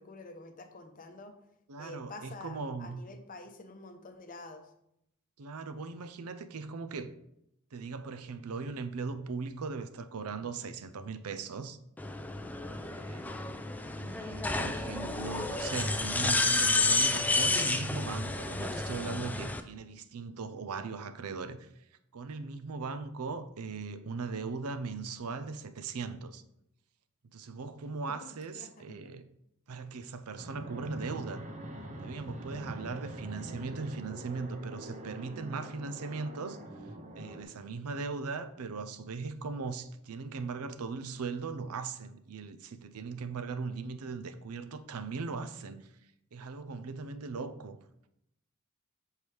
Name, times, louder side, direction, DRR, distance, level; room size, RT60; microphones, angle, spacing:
voice 1, 0.0-1.3 1.8-4.7 28.2-29.1, left 2 dB, 40° left, 0.7 m, -48 dB
voice 2, 1.7-3.0 5.4-7.1 7.7-11.8 12.8-13.4 14.0-21.7 22.1-26.4 27.3-29.2 29.7-31.4 32.0-36.6 37.2-45.9 46.3-47.8, right 4 dB, 85° right, 0.5 m, -39 dB
sound 1, 12.0-19.6, left 2 dB, 5° left, 0.3 m, -30 dB
Fixed-wing aircraft airplane, 30.4-37.4, right 1 dB, 35° right, 0.8 m, -44 dB
7.0 x 4.6 x 3.3 m
head